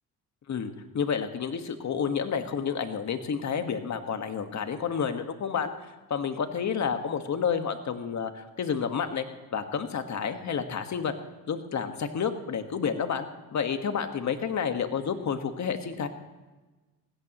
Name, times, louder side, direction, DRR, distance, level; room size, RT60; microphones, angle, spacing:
voice 1, 0.5-5.7 6.1-9.3 9.5-11.1 11.5-13.3 13.5-16.1, left 6 dB, 45° left, 7 dB, 1.7 m, -30 dB
19.5 x 16.5 x 3.1 m, 1.2 s
supercardioid pair, 80°, 38 cm